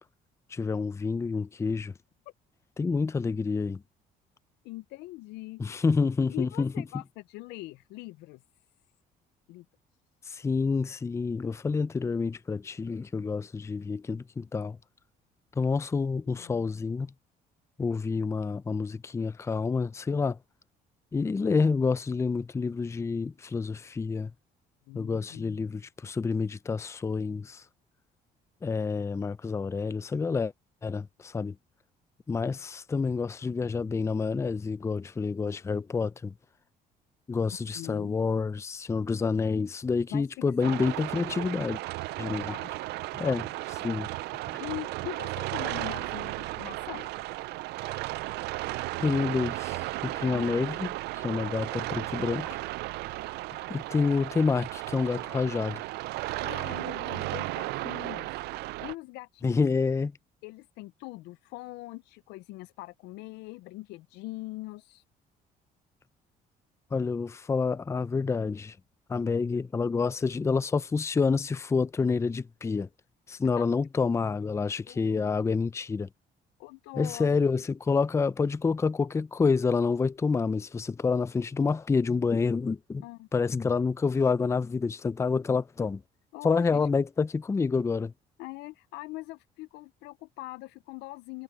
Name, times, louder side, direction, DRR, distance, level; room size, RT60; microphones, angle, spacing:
voice 1, 0.5-1.9 2.8-3.8 5.6-6.7 10.3-14.8 15.6-17.1 17.8-20.4 21.1-24.3 24.9-27.6 28.6-30.5 30.8-31.6 32.3-36.3 37.3-41.8 42.2-42.5 43.2-43.4 43.8-44.1 44.5-44.6 49.0-52.6 53.7-55.8 59.4-60.1 66.9-68.8 69.1-72.9 73.3-76.1 77.0-83.0 83.3-86.0 86.4-88.1, left 4 dB, 15° left, 0.4 m, -28 dB
voice 2, 4.6-5.8 6.3-8.4 9.5-9.7 16.3-16.6 24.9-25.7 37.7-38.1 40.1-41.3 42.5-42.7 43.2-43.4 44.6-47.1 50.3-50.6 51.4-51.5 56.4-59.6 60.4-65.0 73.6-73.7 74.9-75.3 76.6-77.5 83.0-83.3 86.3-86.9 88.4-91.4, left 20 dB, 90° left, 0.5 m, -42 dB
sound 1, 40.6-58.9, right 19 dB, 80° right, 0.4 m, -35 dB
cardioid pair, 110°, 17 cm